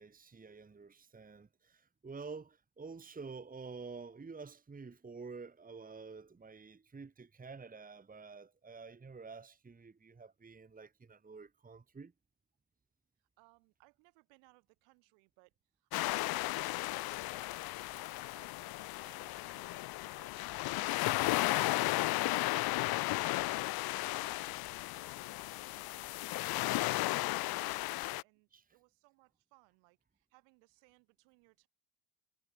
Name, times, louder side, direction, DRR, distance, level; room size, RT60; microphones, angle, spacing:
voice 1, 0.0-12.1 28.5-28.6, right 4 dB, 20° right, 1.7 m, -49 dB
voice 2, 13.2-17.5 17.9-19.8 20.2-23.8 24.0-27.8 28.2-31.7, right 33 dB, 75° right, 6.8 m, -67 dB
sound 1, 15.9-28.2, left 19 dB, 55° left, 0.7 m, -34 dB
hypercardioid pair, 70°, 44 cm